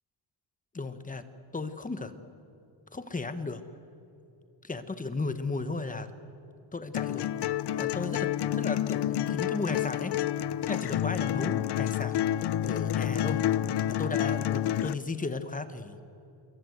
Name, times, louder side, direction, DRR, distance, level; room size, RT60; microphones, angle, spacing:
voice 1, 0.7-1.3 1.5-2.2 2.9-3.6 4.6-6.1 6.7-7.3 7.8-10.2 10.7-13.4 13.9-16.0, left 3 dB, 15° left, 10 dB, 1.2 m, -35 dB
sound 1, 6.9-14.9, left 12 dB, 55° left, 0.6 m, -29 dB
27.0 x 23.0 x 8.1 m, 2.9 s
wide cardioid pair, 160°, 49 cm